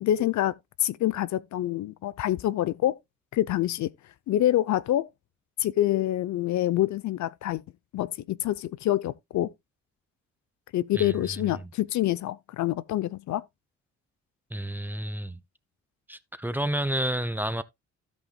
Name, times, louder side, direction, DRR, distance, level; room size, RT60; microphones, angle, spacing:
voice 1, 0.0-3.0 3.3-3.9 4.3-5.1 5.6-7.6 7.9-9.5 10.7-13.4, left 13 dB, 70° left, 0.6 m, -26 dB
voice 2, 10.9-11.7 14.5-15.4 16.1-17.6, right 1 dB, 5° right, 0.7 m, -30 dB
16.0 x 5.4 x 2.2 m
cardioid pair, 90°, 30 cm